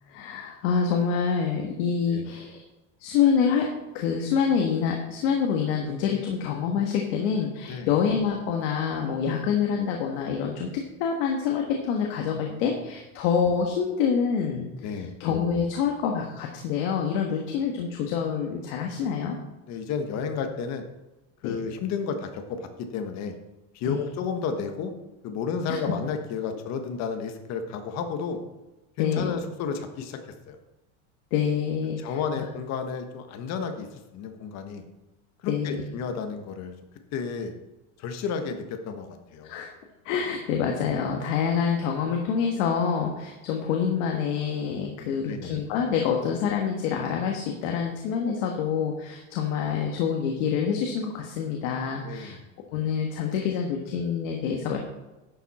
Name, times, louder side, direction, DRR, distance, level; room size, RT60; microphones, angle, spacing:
voice 1, 0.1-2.6 3.0-3.7 3.9-19.4 21.4-21.6 23.8-24.0 25.7-25.8 29.0-29.4 31.3-32.4 35.4-35.8 39.4-39.7 40.0-52.4 52.7-54.8, left 7 dB, 80° left, 1 dB, 1.5 m, -26 dB
voice 2, 14.8-15.1 19.7-20.8 21.4-23.3 23.7-24.9 25.2-28.4 29.0-30.2 30.5-30.6 32.0-34.8 35.4-36.7 37.1-37.5 38.0-39.6 45.0-45.6 52.0-52.4, left 6 dB, 45° left, 6 dB, 1.3 m, -32 dB
11.0 x 7.2 x 4.3 m, 1.0 s
cardioid pair, 155°, 37 cm